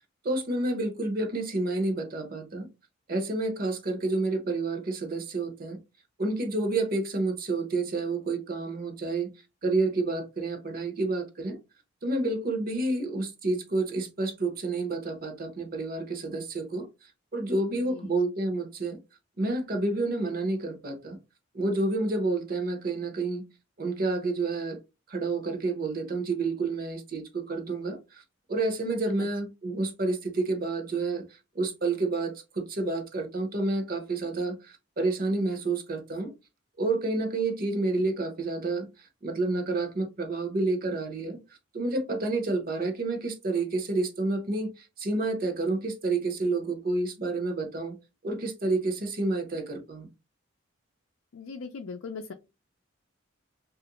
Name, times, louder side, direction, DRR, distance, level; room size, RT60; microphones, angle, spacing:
voice 1, 0.2-2.7 3.1-5.8 6.2-9.3 9.6-11.6 12.0-16.9 17.3-19.0 19.4-21.2 21.5-23.4 23.8-24.8 25.1-28.2 28.5-36.3 36.8-41.4 41.7-48.0 48.2-50.1, right 2 dB, 45° right, 0.7 m, -29 dB
voice 2, 51.3-52.3, left 4 dB, 85° left, 0.4 m, -39 dB
3.1 x 2.4 x 2.9 m
head